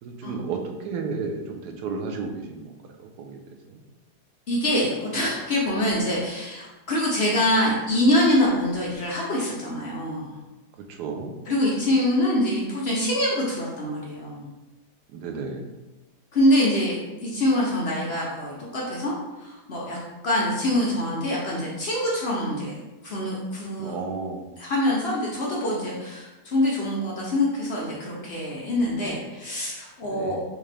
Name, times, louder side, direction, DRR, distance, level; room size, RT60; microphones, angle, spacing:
voice 1, 0.0-3.4 3.7-3.8 10.8-11.3 15.1-15.6 23.8-24.4 30.0-30.4, right 4 dB, 80° right, 4 dB, 1.1 m, -33 dB
voice 2, 4.5-10.3 11.5-14.5 16.3-19.1 19.4-20.0 20.2-22.7 23.0-24.0 24.6-30.4, left 1 dB, 60° left, -4 dB, 0.7 m, -25 dB
3.6 x 2.9 x 3.2 m, 1.1 s
omnidirectional pair, 1.8 m